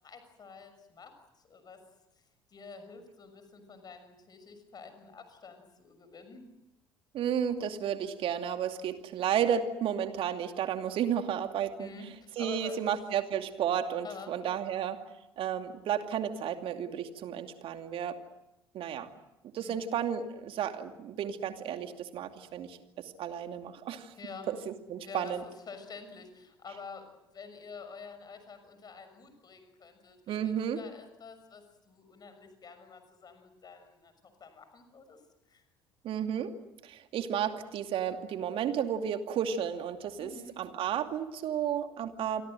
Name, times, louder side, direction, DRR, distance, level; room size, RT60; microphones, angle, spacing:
voice 1, 0.0-1.8 2.5-6.4 11.8-12.9 14.0-14.3 19.6-19.8 24.2-24.5 25.0-34.1 34.4-35.2 35.5-35.6 40.2-40.6, left 5 dB, 35° left, 9 dB, 6.4 m, -48 dB
voice 2, 7.1-11.9 12.4-15.0 15.4-18.2 18.7-19.1 19.5-24.1 24.5-25.4 30.3-30.8 36.0-36.5 36.8-40.3 40.6-42.4, right 9 dB, 50° right, 7 dB, 2.6 m, -32 dB
28.5 x 24.0 x 7.8 m, 0.92 s
figure-of-eight pair, 60°, 12 cm